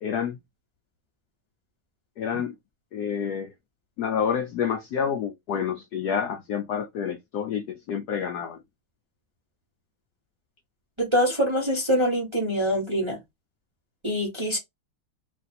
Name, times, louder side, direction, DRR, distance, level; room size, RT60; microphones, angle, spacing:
voice 1, 0.0-0.4 2.2-2.5 2.9-3.5 4.0-8.6, left 7 dB, 80° left, 0.9 m, -28 dB
voice 2, 11.0-13.2 14.0-14.6, equal, 20° right, 0.8 m, -24 dB
3.3 x 2.5 x 4.1 m
omnidirectional pair, 2.3 m